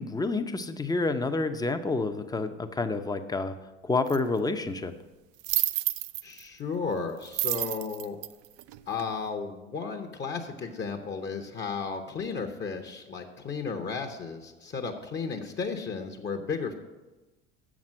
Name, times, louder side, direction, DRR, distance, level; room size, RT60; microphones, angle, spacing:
voice 1, 0.0-3.6 3.8-4.9, left 3 dB, 10° left, 9 dB, 0.7 m, -29 dB
sound 1, 4.1-4.2 5.4-6.4 7.3-9.1, right 16 dB, 45° right, 0.4 m, -29 dB
voice 2, 6.2-8.2 8.9-16.7, left 5 dB, 30° left, 5 dB, 0.9 m, -34 dB
7.3 x 6.1 x 7.6 m, 1.1 s
hypercardioid pair, 70°, 34 cm